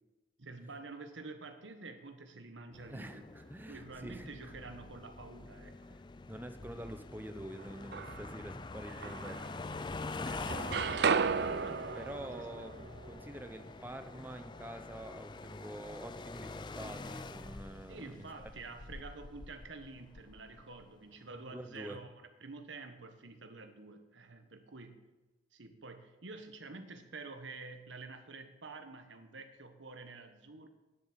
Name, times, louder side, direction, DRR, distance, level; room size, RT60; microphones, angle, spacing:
voice 1, 0.4-3.3 3.7-6.0 8.8-9.1 10.2-12.1 12.4-12.7 17.9-25.0 25.5-30.7, right 3 dB, 90° right, 7 dB, 1.3 m, -49 dB
sound 1, 2.7-20.9, left 3 dB, 25° left, 0.3 m, -46 dB
voice 2, 2.9-4.5 6.3-9.6 10.4-10.8 12.0-18.5 21.5-22.0, right 1 dB, 10° right, 8 dB, 0.7 m, -47 dB
sound 2, 7.6-8.5 9.0-10.0 10.3-14.3, right 5 dB, 60° right, 0.4 m, -35 dB
10.0 x 7.7 x 7.4 m, 1.1 s
head